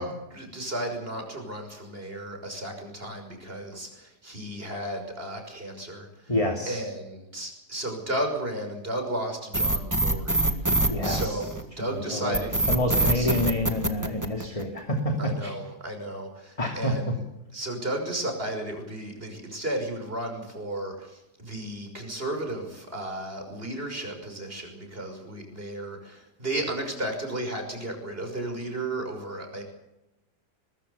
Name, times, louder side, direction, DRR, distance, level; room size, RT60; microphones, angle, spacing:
voice 1, 0.0-6.3 6.7-11.5 11.8-12.7 13.0-13.3 15.2-17.2 17.5-29.6, right 1 dB, 35° right, 4 dB, 6.3 m, -34 dB
voice 2, 6.3-6.8 10.9-11.5 11.8-15.5 16.6-17.1, left 1 dB, 20° left, 3 dB, 2.8 m, -28 dB
sound 1, 9.5-11.8 12.3-14.8, right 2 dB, 10° right, 2.0 m, -24 dB
22.0 x 22.0 x 7.1 m, 0.93 s
omnidirectional pair, 1.7 m